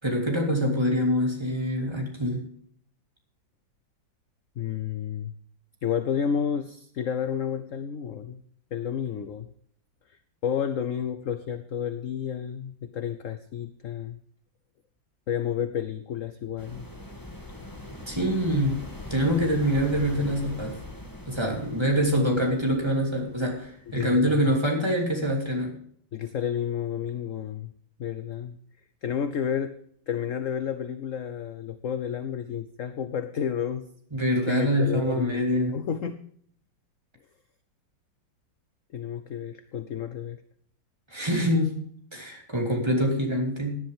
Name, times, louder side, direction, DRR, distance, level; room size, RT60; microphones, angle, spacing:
voice 1, 0.0-2.4 18.1-18.8 19.1-20.8 21.3-25.7 34.1-35.7 41.1-41.8 42.1-43.8, equal, 15° right, 0 dB, 3.1 m, -25 dB
voice 2, 4.6-5.3 5.8-8.4 8.7-9.5 10.4-14.2 15.3-16.9 23.9-24.5 26.1-27.7 28.0-28.6 29.0-29.7 30.1-33.9 34.4-36.2 38.9-40.4, left 8 dB, 60° left, 11 dB, 0.9 m, -31 dB
sound 1, 16.6-24.2, left 1 dB, 10° left, 2.0 m, -42 dB
17.5 x 10.5 x 3.5 m, 0.62 s
omnidirectional pair, 2.0 m